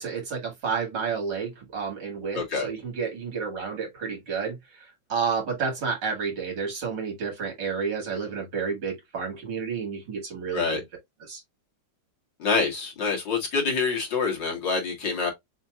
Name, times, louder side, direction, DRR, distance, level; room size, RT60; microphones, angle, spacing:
voice 1, 0.0-10.8 11.3-11.4, right 5 dB, 75° right, 2.8 m, -31 dB
voice 2, 2.3-2.7 10.5-10.8 12.4-15.3, left 4 dB, 80° left, 2.6 m, -26 dB
6.5 x 2.8 x 2.4 m
omnidirectional pair, 1.9 m